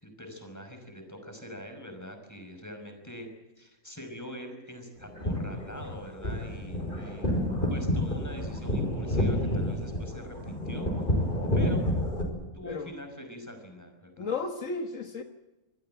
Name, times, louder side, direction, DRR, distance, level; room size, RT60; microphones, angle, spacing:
voice 1, 0.0-3.3 3.6-7.3 7.7-10.9 11.5-11.8 12.5-14.3, left 1 dB, 10° left, 5 dB, 5.6 m, -43 dB
sound 1, 5.0-12.2, left 1 dB, 40° left, 5.8 m, -29 dB
voice 2, 14.2-15.2, left 4 dB, 70° left, 6 dB, 1.7 m, -33 dB
26.0 x 16.0 x 9.0 m, 1.1 s
omnidirectional pair, 1.4 m